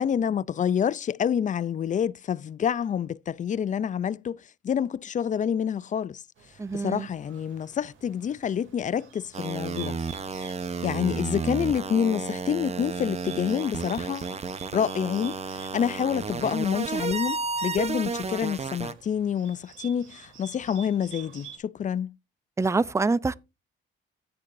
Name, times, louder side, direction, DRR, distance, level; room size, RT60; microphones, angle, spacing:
voice 1, 0.0-6.2 6.7-10.0 10.3-10.5 10.8-14.4 14.7-22.1, left 8 dB, 40° left, 0.5 m, -28 dB
Bird, 6.4-21.6, right 9 dB, 80° right, 2.7 m, -50 dB
voice 2, 6.6-7.1 22.6-23.3, right 3 dB, 15° right, 0.5 m, -25 dB
sound 1, 9.3-18.9, right 4 dB, 30° right, 0.9 m, -32 dB
16.0 x 6.8 x 2.6 m
cardioid pair, 90°, 20 cm